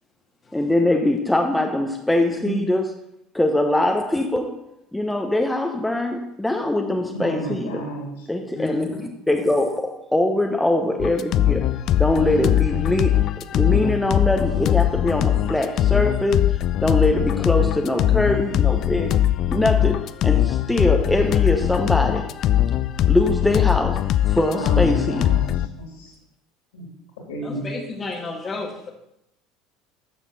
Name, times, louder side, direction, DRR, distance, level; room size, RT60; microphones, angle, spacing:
voice 1, 0.5-2.9 3.3-4.6 4.9-7.8 8.3-11.7 11.9-13.2 13.5-16.5 16.8-19.2 19.5-22.3 23.1-25.3, left 1 dB, 5° left, 3 dB, 0.9 m, -22 dB
voice 2, 7.1-8.3 24.4-26.1 26.7-26.9 27.3-27.7, right 1 dB, 70° left, 0 dB, 3.1 m, -31 dB
voice 3, 8.5-9.1 27.4-28.9, left 3 dB, 25° left, 1 dB, 1.5 m, -31 dB
sound 1, 11.0-25.7, left 12 dB, 45° left, 0.4 m, -21 dB
12.0 x 7.1 x 4.0 m, 0.81 s
figure-of-eight pair, 65°, 0 cm